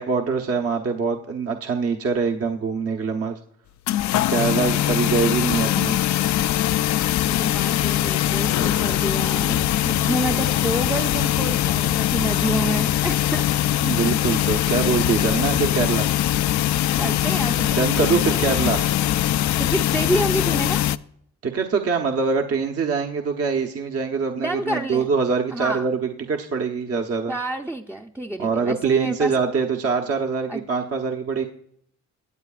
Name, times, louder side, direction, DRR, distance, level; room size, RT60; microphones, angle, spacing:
voice 1, 0.0-3.4 4.3-6.0 9.9-10.0 13.8-16.1 17.8-18.8 21.4-27.3 28.4-31.5, right 5 dB, 50° right, 3 dB, 1.1 m, -24 dB
sound 1, 3.9-21.0, left 13 dB, 70° left, 0.5 m, -22 dB
voice 2, 7.3-13.4 16.9-18.9 19.6-20.8 24.4-25.1 25.5-25.9 27.3-29.3 30.5-30.6, right 1 dB, 5° right, 1 dB, 0.7 m, -28 dB
23.0 x 8.2 x 2.5 m, 0.70 s
cardioid pair, 90°, 30 cm